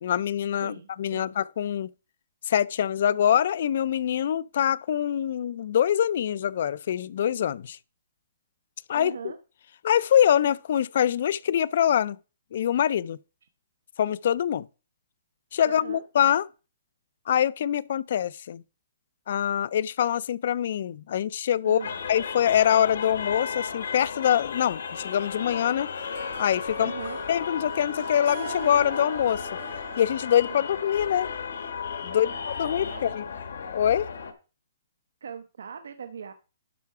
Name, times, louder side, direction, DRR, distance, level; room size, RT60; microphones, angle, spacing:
voice 1, 0.0-1.9 2.5-7.8 8.9-9.1 9.8-12.2 12.5-13.2 14.0-14.7 15.5-16.4 17.3-18.6 19.3-21.8 22.1-25.9 26.4-26.9 27.3-29.4 30.0-31.3 32.0-33.2 33.7-34.1, left 10 dB, 50° left, 0.3 m, -24 dB
voice 2, 0.6-1.3 9.0-9.4 15.6-16.0 21.6-22.0 26.7-27.2 30.5-30.6 32.1-32.4 32.9-33.2 35.2-36.3, right 7 dB, 85° right, 0.8 m, -40 dB
sound 1, 21.8-34.3, left 6 dB, 75° left, 1.3 m, -35 dB
Harp, 25.6-30.9, right 10 dB, 50° right, 0.7 m, -44 dB
12.0 x 4.5 x 4.7 m
hypercardioid pair, 170°, 0 cm